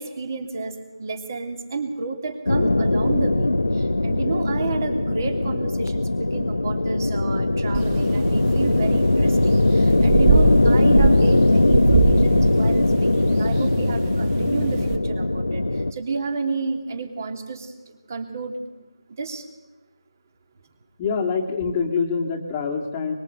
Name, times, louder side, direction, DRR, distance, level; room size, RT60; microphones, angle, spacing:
voice 1, 0.0-18.6 19.2-19.5, right 3 dB, 35° right, 6 dB, 2.9 m, -31 dB
sound 1, 2.5-15.9, left 2 dB, 80° left, 1.1 m, -20 dB
sound 2, 7.7-15.0, right 5 dB, 15° right, 0.9 m, -25 dB
voice 2, 21.0-23.1, left 5 dB, 20° left, 1 dB, 2.0 m, -25 dB
24.5 x 23.5 x 8.1 m, 1.1 s
figure-of-eight pair, 165°, 3 cm